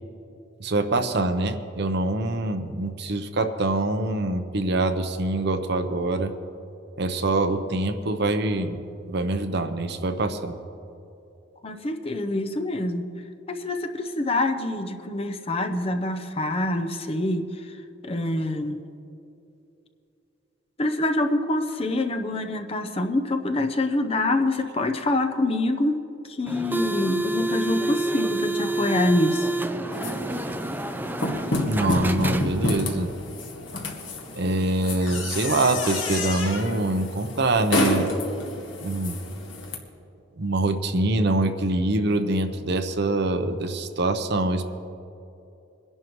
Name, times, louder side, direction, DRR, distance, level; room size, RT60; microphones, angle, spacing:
voice 1, 0.6-6.3 7.0-10.6 31.7-33.1 34.4-38.1 38.8-39.2 40.4-44.6, right 2 dB, 60° right, 8 dB, 0.8 m, -24 dB
voice 2, 11.6-13.2 13.5-17.8 18.0-18.8 20.8-26.0 26.2-29.5, left 1 dB, 30° left, 6 dB, 0.7 m, -26 dB
sound 1, 26.5-32.9, right 1 dB, 10° right, 0.5 m, -28 dB
sound 2, 29.9-39.8, left 2 dB, 75° left, 1.6 m, -30 dB
22.5 x 11.0 x 3.1 m, 2.7 s
head